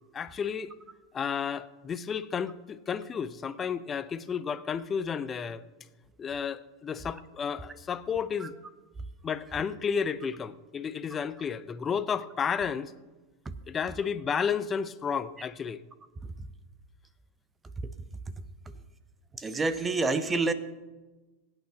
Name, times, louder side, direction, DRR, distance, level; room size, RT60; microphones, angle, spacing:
voice 1, 0.1-0.7 1.1-5.6 6.2-8.5 9.2-12.9 13.7-15.8, left 7 dB, 25° left, 0.7 m, -32 dB
voice 2, 19.3-20.5, right 3 dB, 20° right, 0.9 m, -28 dB
22.5 x 8.9 x 2.9 m
hypercardioid pair, 95°, 0 cm